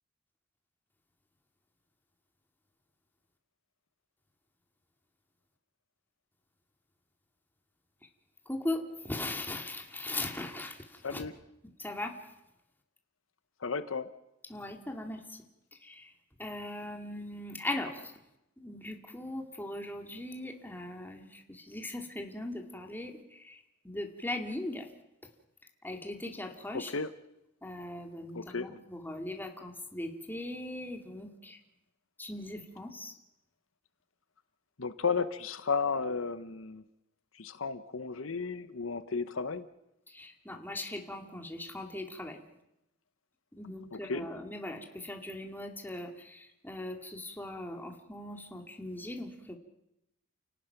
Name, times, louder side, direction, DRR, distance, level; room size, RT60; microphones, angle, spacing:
voice 1, 8.5-11.3 11.8-12.2 14.5-15.4 15.8-16.1 16.4-18.2 18.6-24.9 25.8-26.9 27.6-31.6 32.2-33.1 40.1-42.4 43.6-49.6, left 1 dB, 10° left, 2 dB, 2.4 m, -39 dB
voice 2, 13.6-14.1 26.7-27.1 28.3-28.8 34.8-36.8 37.4-39.7 43.9-44.3, left 5 dB, 90° left, 12 dB, 1.0 m, -33 dB
29.0 x 18.0 x 5.9 m, 0.88 s
head